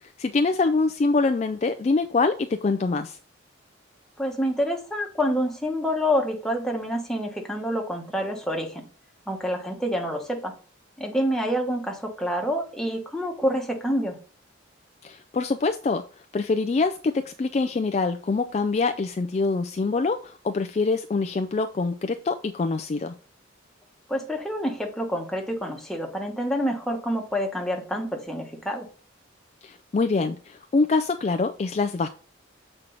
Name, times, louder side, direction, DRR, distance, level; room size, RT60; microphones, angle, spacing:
voice 1, 0.0-3.2 15.0-16.0 16.3-23.1 29.6-32.1, left 3 dB, 35° left, 0.3 m, -25 dB
voice 2, 4.2-8.8 9.3-10.5 11.0-14.2 24.1-28.9, equal, ahead, 1.1 m, -27 dB
7.5 x 4.5 x 3.9 m
head